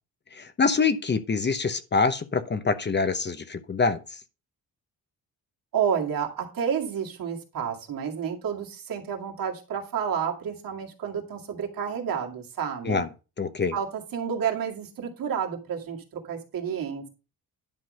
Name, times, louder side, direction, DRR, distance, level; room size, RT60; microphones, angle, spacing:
voice 1, 0.3-4.0 12.8-13.1 13.4-13.7, left 4 dB, 30° left, 11 dB, 0.8 m, -25 dB
voice 2, 5.7-13.0 13.7-17.1, right 7 dB, 65° right, 0 dB, 2.3 m, -30 dB
10.5 x 3.9 x 6.4 m, 0.32 s
cardioid pair, 125°, 36 cm